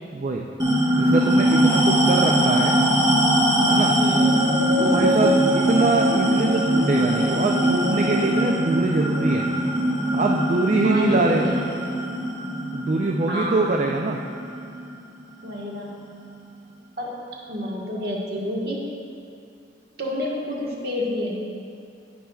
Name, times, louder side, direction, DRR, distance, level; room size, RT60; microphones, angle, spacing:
voice 1, 0.1-0.4 0.9-2.8 3.6-4.0 4.8-9.5 10.1-11.5 12.7-14.2, right 2 dB, 40° right, 1 dB, 0.4 m, -23 dB
sound 1, 0.6-15.4, right 1 dB, 20° right, 0.9 m, -21 dB
voice 2, 4.0-4.6 5.0-5.5 10.8-11.6 13.3-13.7 15.4-16.1 17.0-17.2 17.5-18.9 20.0-21.3, left 1 dB, 55° right, -3 dB, 1.4 m, -29 dB
16.5 x 5.7 x 2.3 m, 2.4 s
head